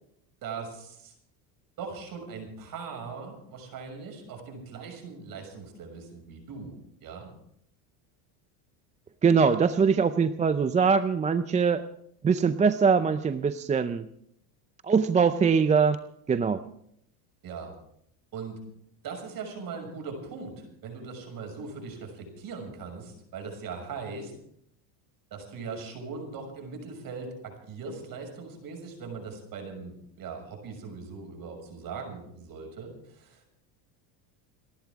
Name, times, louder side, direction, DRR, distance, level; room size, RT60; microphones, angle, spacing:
voice 1, 0.4-1.1 1.8-6.7 7.0-7.3 17.4-17.7 18.3-18.6 19.0-24.3 25.3-33.6, right 5 dB, 45° right, 4 dB, 6.5 m, -40 dB
voice 2, 9.2-11.8 12.2-14.1 14.8-16.0 16.3-16.6, right 5 dB, 15° right, 11 dB, 0.5 m, -22 dB
30.0 x 11.5 x 3.6 m, 0.72 s
supercardioid pair, 110°, 48 cm